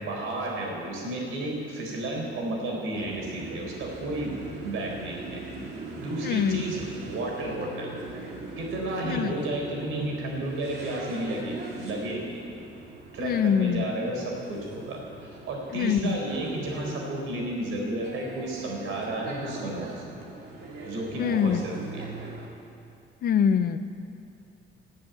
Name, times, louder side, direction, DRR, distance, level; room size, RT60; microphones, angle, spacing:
voice 1, 0.0-5.4 6.0-7.9 8.6-12.4 13.1-19.9 20.8-22.2, right 1 dB, 80° right, -1 dB, 4.6 m, -32 dB
sound 1, 2.9-22.5, right 3 dB, 50° right, 2.9 m, -41 dB
voice 2, 6.2-6.6 9.0-9.3 13.2-13.8 15.7-16.2 21.2-21.6 23.2-23.8, left 7 dB, 50° left, 11 dB, 0.7 m, -24 dB
20.0 x 7.8 x 9.1 m, 2.5 s
cardioid pair, 175°, 20 cm